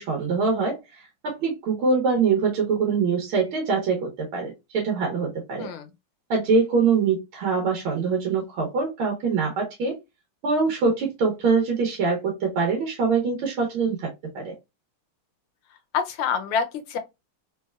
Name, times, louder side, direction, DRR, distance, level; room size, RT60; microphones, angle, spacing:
voice 1, 0.0-5.7 6.3-10.0 10.4-14.5, right 4 dB, 80° right, 1.8 m, -24 dB
voice 2, 15.9-17.0, left 6 dB, 85° left, 1.6 m, -26 dB
3.9 x 3.2 x 2.3 m
omnidirectional pair, 2.3 m